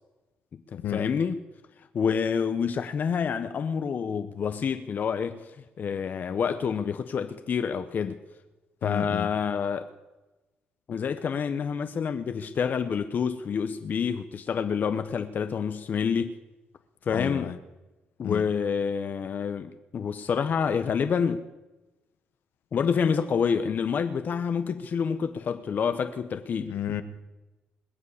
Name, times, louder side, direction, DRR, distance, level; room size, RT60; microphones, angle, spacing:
voice 1, 0.5-1.4 1.9-5.5 5.8-8.2 8.8-9.9 10.9-16.4 17.0-17.5 18.2-21.4 22.7-26.7, left 6 dB, 55° left, 9 dB, 0.8 m, -28 dB
voice 2, 8.8-9.3 17.1-17.6 18.2-18.4 26.7-27.0, left 10 dB, 75° left, 10 dB, 1.1 m, -31 dB
21.0 x 7.5 x 8.4 m, 1.1 s
cardioid pair, 75°, 4 cm